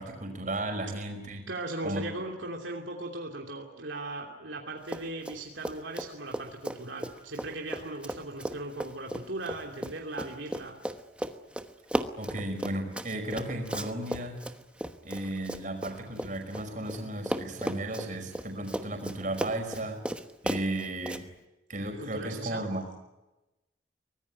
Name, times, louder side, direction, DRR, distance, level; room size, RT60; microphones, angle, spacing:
voice 1, 0.0-1.4 1.8-2.0 12.2-14.6 15.0-20.0 20.4-21.3 21.7-22.8, right 1 dB, 40° right, 4 dB, 5.3 m, -34 dB
voice 2, 1.5-10.8 22.0-22.7, right 2 dB, 75° right, 1 dB, 2.9 m, -38 dB
Run, 4.8-5.4 5.6-17.0 17.3-21.2, equal, 5° right, 1.1 m, -35 dB
24.0 x 19.5 x 9.9 m, 1.0 s
head